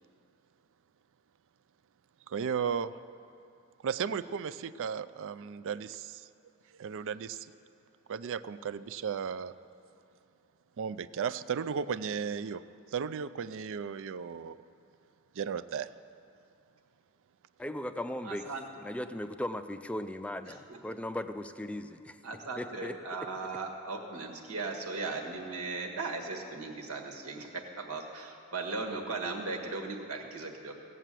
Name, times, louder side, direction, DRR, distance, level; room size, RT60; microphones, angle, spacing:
voice 1, 2.3-2.9 3.8-6.3 6.7-7.5 8.1-9.5 10.8-12.6 12.9-14.6 15.3-15.9, right 7 dB, 60° right, 0.4 m, -35 dB
voice 2, 17.6-18.5 18.8-22.2 22.6-23.0, left 1 dB, 5° left, 0.4 m, -37 dB
voice 3, 18.2-18.6 20.5-21.0 22.2-30.7, right 3 dB, 80° right, 1.6 m, -38 dB
16.5 x 8.1 x 7.5 m
head